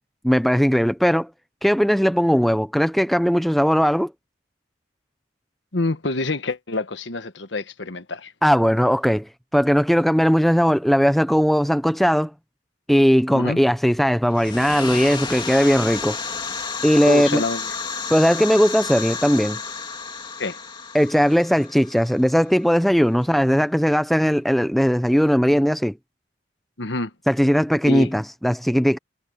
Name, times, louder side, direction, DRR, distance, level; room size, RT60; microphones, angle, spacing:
voice 1, 0.2-1.3 1.6-4.1 8.4-12.3 12.9-16.2 16.8-17.4 18.1-19.6 20.9-26.0 27.3-29.0, equal, ahead, 0.5 m, -18 dB
voice 2, 5.7-8.3 13.3-13.6 17.0-17.7 20.4-20.6 26.8-27.1 27.9-28.1, left 2 dB, 75° left, 1.4 m, -26 dB
sound 1, 14.3-22.9, left 5 dB, 25° left, 2.9 m, -32 dB
head